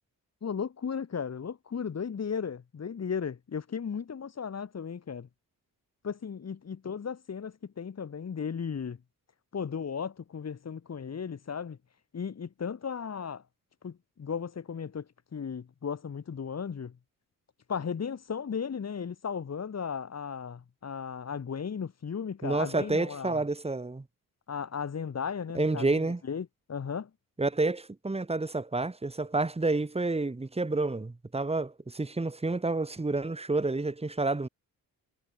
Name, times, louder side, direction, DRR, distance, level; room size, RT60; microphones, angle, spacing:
voice 1, 0.4-5.3 6.0-9.0 9.5-11.8 12.1-13.4 13.8-17.0 17.7-23.4 24.5-27.1, left 6 dB, 45° left, 5.2 m, -35 dB
voice 2, 22.4-24.0 25.5-26.2 27.4-34.5, right 3 dB, 15° right, 4.3 m, -29 dB
cardioid pair, 125°, 36 cm